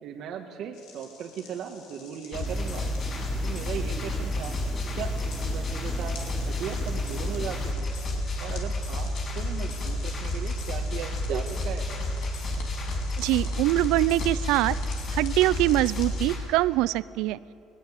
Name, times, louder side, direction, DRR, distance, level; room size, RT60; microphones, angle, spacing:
voice 1, 0.0-2.9 3.4-4.6 4.9-6.1 6.5-7.9 8.4-11.9, right 8 dB, 65° right, 2 dB, 1.6 m, -37 dB
sound 1, 0.7-16.2, left 4 dB, 80° left, 3.9 m, -48 dB
sound 2, 2.3-16.4, left 1 dB, 45° left, 7.3 m, -30 dB
sound 3, 2.4-7.7, left 2 dB, 15° left, 1.0 m, -40 dB
voice 2, 13.2-14.8 15.1-17.4, right 17 dB, 80° right, 19 dB, 0.5 m, -23 dB
20.0 x 19.5 x 8.5 m, 2.7 s
cardioid pair, 110°, 0 cm